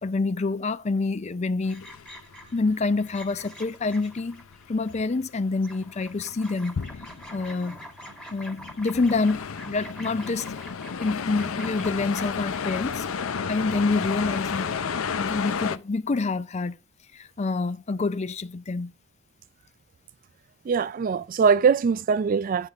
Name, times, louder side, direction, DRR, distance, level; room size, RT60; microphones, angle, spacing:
voice 1, 0.0-1.8 2.5-4.4 4.7-6.8 7.3-7.8 8.3-10.5 11.0-13.1 13.5-14.7 15.2-16.8 17.1-18.9, left 3 dB, 35° left, 0.4 m, -27 dB
sound 1, 1.7-3.6 3.9-5.4 5.7-5.8 6.0-15.8, left 6 dB, 85° left, 0.5 m, -32 dB
sound 2, 1.7-2.6 3.0-5.4 5.6-12.7, equal, 5° left, 1.5 m, -45 dB
voice 2, 20.7-22.7, right 6 dB, 40° right, 0.3 m, -22 dB
9.7 x 3.6 x 5.3 m
head